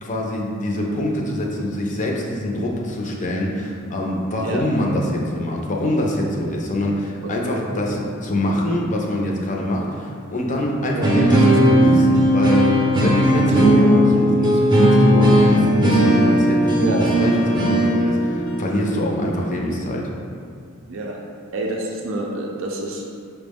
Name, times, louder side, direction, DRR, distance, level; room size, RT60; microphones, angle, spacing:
voice 1, 0.0-20.1, left 1 dB, 35° left, -1 dB, 0.5 m, -24 dB
sound 1, 11.0-20.0, equal, 20° right, 0.6 m, -17 dB
voice 2, 21.5-23.1, right 2 dB, 65° right, -1 dB, 0.4 m, -28 dB
5.6 x 2.1 x 3.5 m, 2.3 s
head